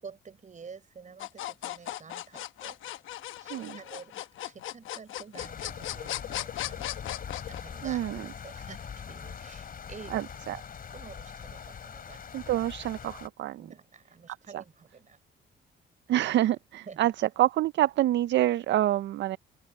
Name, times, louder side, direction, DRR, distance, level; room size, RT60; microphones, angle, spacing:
voice 1, 0.0-3.0 3.4-6.8 7.3-8.1 8.4-10.2 10.9-12.6 13.6-15.2 16.9-17.0, right 5 dB, 40° right, 5.2 m, -49 dB
sound 1, 1.2-7.6, left 14 dB, 80° left, 1.0 m, -37 dB
sound 2, 5.4-13.3, left 7 dB, 45° left, 3.1 m, -42 dB
voice 2, 7.8-8.3 10.1-10.6 12.3-13.6 14.5-14.6 16.1-19.4, right 14 dB, 65° right, 0.4 m, -27 dB
open air
cardioid pair, 90°, 20 cm